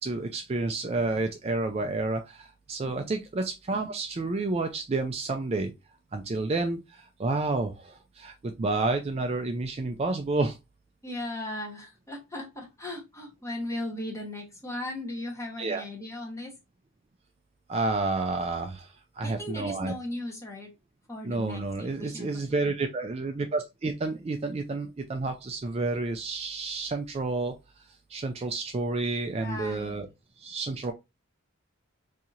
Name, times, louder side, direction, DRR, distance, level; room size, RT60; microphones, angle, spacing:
voice 1, 0.0-5.7 6.1-10.6 15.6-15.8 17.7-19.9 21.2-27.5 28.1-30.1 30.4-30.9, right 3 dB, 30° right, 5 dB, 0.3 m, -30 dB
voice 2, 11.0-16.6 19.2-20.7 21.1-22.3 22.6-22.7 29.4-30.0, left 1 dB, 15° left, 0 dB, 0.9 m, -37 dB
4.2 x 2.7 x 2.4 m, 0.23 s
head